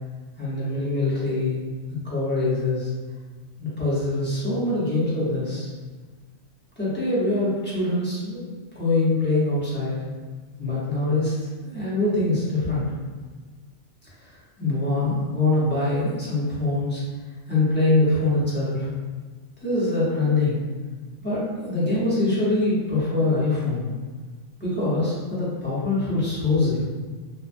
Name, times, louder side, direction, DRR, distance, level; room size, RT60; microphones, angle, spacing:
voice 1, 0.4-1.6 2.0-2.9 3.6-5.7 6.8-8.5 8.7-9.9 10.6-11.4 11.6-12.9 14.6-17.0 17.5-18.9 19.6-20.6 21.2-23.9 24.6-26.8, left 2 dB, 10° left, -10 dB, 0.6 m, -23 dB
3.1 x 2.2 x 2.5 m, 1.4 s
omnidirectional pair, 1.4 m